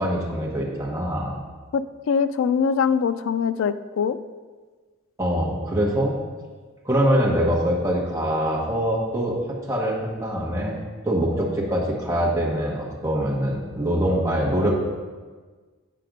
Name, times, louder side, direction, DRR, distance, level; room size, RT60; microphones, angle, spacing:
voice 1, 0.0-1.3 5.2-6.2 6.8-9.4 9.7-14.7, equal, 15° right, -4 dB, 1.2 m, -24 dB
voice 2, 1.7-4.2, left 6 dB, 70° left, 13 dB, 0.3 m, -23 dB
7.5 x 4.2 x 5.2 m, 1.4 s
head